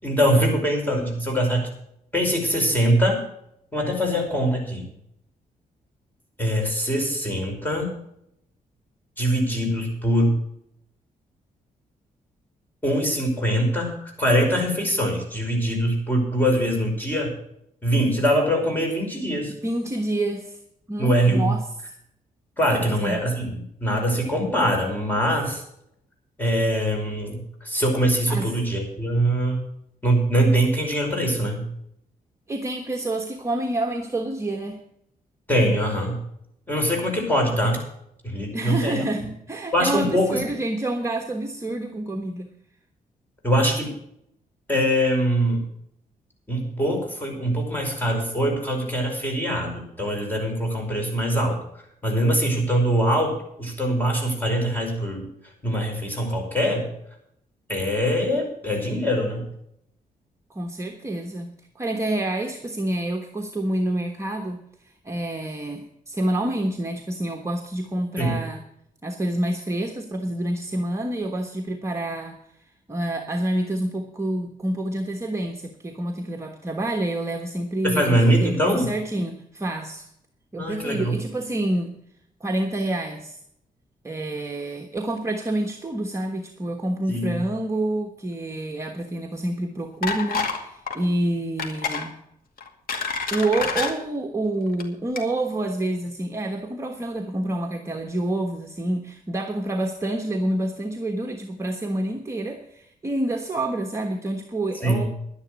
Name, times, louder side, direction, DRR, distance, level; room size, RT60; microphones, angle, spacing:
voice 1, 0.0-1.7 2.1-3.2 3.7-4.9 6.4-8.0 9.2-10.4 12.8-17.3 17.8-19.5 21.0-21.5 22.6-25.6 26.4-29.6 30.0-31.7 35.5-36.2 36.7-37.8 38.2-39.0 39.7-40.4 43.4-44.0 44.7-45.6 46.5-51.6 52.0-55.3 55.6-56.9 57.7-59.5 68.2-68.4 77.8-78.9 80.6-81.1 87.1-87.4 104.8-105.1, equal, 10° left, 1 dB, 5.3 m, -23 dB
voice 2, 19.6-20.6 20.9-21.7 22.8-23.2 28.3-28.5 32.5-34.8 38.5-42.5 60.5-68.6 69.0-72.4 72.9-80.1 80.5-81.9 82.4-83.4 84.0-92.2 93.3-105.1, right 1 dB, 20° right, 2 dB, 1.3 m, -28 dB
sound 1, 90.0-90.6 90.9-91.1 91.6-92.1 92.6-93.9 94.7-94.8 95.2-95.3, left 4 dB, 75° left, 2.2 m, -27 dB
11.5 x 10.5 x 6.3 m, 0.74 s
cardioid pair, 125°, 15 cm